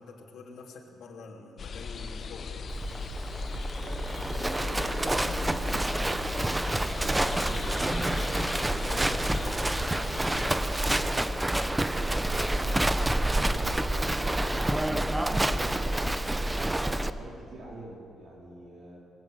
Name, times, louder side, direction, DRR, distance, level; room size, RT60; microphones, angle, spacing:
voice 1, 0.0-2.7 8.8-9.1, left 4 dB, 70° left, -1 dB, 3.1 m, -46 dB
sound 1, 1.6-10.6, left 5 dB, 40° left, 0.8 m, -39 dB
Livestock farm animals working animals, 2.7-17.1, right 1 dB, 10° right, 0.6 m, -28 dB
voice 2, 3.8-5.9 6.3-12.8 13.2-19.0, right 2 dB, 55° right, -4 dB, 4.1 m, -45 dB
21.5 x 16.0 x 7.8 m, 2.5 s
cardioid pair, 140°, 0 cm